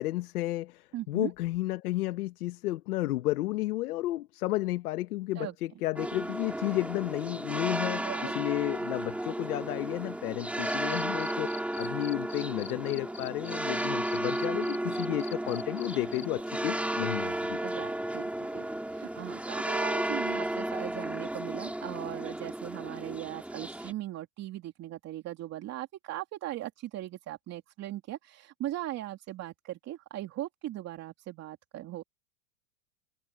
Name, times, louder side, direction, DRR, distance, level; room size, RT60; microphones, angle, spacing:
voice 1, 0.0-11.5 11.8-17.6, left 17 dB, 75° left, 1.6 m, -32 dB
voice 2, 0.9-1.3 5.3-5.5 8.0-8.3 17.6-32.0, right 14 dB, 35° right, 2.9 m, -39 dB
sound 1, 6.0-23.9, right 1 dB, 5° right, 3.1 m, -34 dB
Cricket, 10.6-16.2, left 7 dB, 35° left, 4.9 m, -45 dB
supercardioid pair, 130°, 46 cm